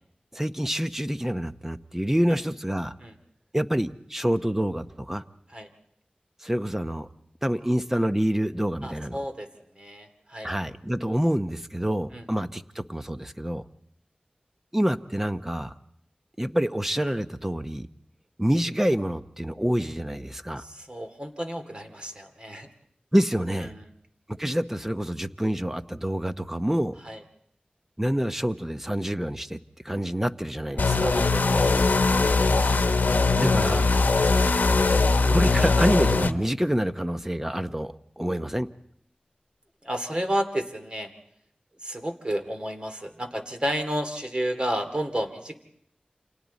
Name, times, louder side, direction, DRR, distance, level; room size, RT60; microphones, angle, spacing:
voice 1, 0.3-2.9 3.5-5.2 6.4-7.1 7.4-9.2 10.4-13.6 14.7-15.7 16.4-17.9 18.4-20.6 23.1-23.7 24.4-26.9 28.0-29.6 29.8-31.1 33.4-33.9 35.3-38.7, equal, 10° right, 10 dB, 0.8 m, -27 dB
voice 2, 8.8-9.5 9.8-10.5 12.1-12.2 20.6-22.7 23.7-23.8 27.1-27.2 31.0-31.7 39.8-41.1 41.8-45.6, equal, 35° right, 5 dB, 2.4 m, -31 dB
sound 1, 30.8-36.3, left 3 dB, 90° left, 0.9 m, -21 dB
29.0 x 26.5 x 4.1 m, 0.68 s
wide cardioid pair, 65°, 3 cm